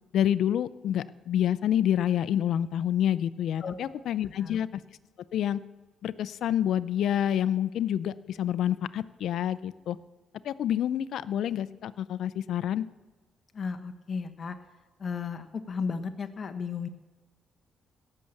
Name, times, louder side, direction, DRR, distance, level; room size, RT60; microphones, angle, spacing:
voice 1, 0.1-4.7 5.3-5.6 6.0-10.0 10.4-12.9, left 10 dB, 75° left, 16 dB, 0.5 m, -28 dB
voice 2, 3.6-4.1 4.4-4.6 13.5-14.6 15.0-16.9, left 5 dB, 45° left, 8 dB, 1.3 m, -34 dB
17.0 x 6.7 x 7.2 m, 1.2 s
cardioid pair, 90°, 0 cm